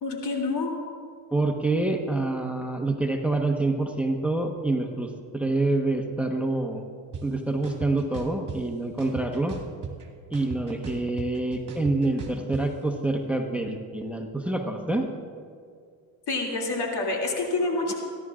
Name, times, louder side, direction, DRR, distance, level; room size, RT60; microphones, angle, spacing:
voice 1, 0.0-0.7 16.3-17.9, left 3 dB, 60° left, 0 dB, 2.9 m, -27 dB
voice 2, 1.3-6.8 7.2-9.6 10.3-15.1, right 2 dB, 5° right, 3 dB, 1.3 m, -27 dB
sound 1, 7.1-7.2 7.6-8.6 9.0-10.1 10.3-12.6, right 5 dB, 40° right, 2.1 m, -37 dB
29.5 x 11.0 x 2.5 m, 2.1 s
supercardioid pair, 70°, 45 cm